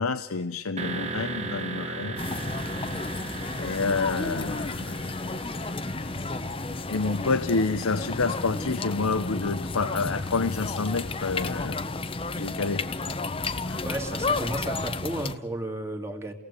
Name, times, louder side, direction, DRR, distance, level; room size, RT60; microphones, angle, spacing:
voice 1, 0.0-2.2 3.6-5.1 6.9-11.8 12.3-12.9 13.7-13.8, left 4 dB, 85° left, 10 dB, 0.8 m, -28 dB
sound 1, 0.8-8.6, right 3 dB, 30° right, 1.3 m, -38 dB
sound 2, 2.2-15.4, left 3 dB, 25° left, 0.8 m, -32 dB
voice 2, 13.8-16.3, right 1 dB, 15° right, 4 dB, 2.1 m, -33 dB
30.0 x 17.5 x 8.3 m, 1.1 s
head